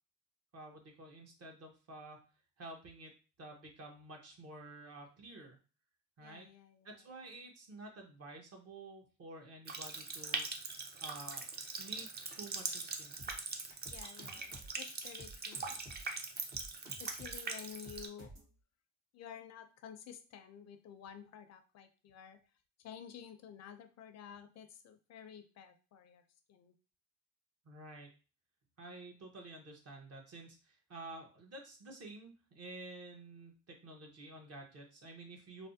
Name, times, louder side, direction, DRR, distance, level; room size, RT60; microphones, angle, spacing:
voice 1, 0.5-2.2 2.6-3.1 3.4-5.6 6.2-6.5 6.8-10.4 11.0-11.4 11.8-12.1 12.4-13.1 27.6-28.1 28.8-35.7, right 2 dB, 55° right, 2 dB, 1.0 m, -50 dB
voice 2, 6.2-7.3 13.9-15.8 16.8-18.4 19.1-22.4 22.8-26.2 26.5-26.7, left 8 dB, 60° left, 8 dB, 0.5 m, -52 dB
Water tap faucet, 9.6-18.1, right 4 dB, 35° right, 0.5 m, -42 dB
sound 1, 13.2-18.5, right 1 dB, 75° right, 1.6 m, -53 dB
3.3 x 2.1 x 2.6 m, 0.34 s
cardioid pair, 90°, 30 cm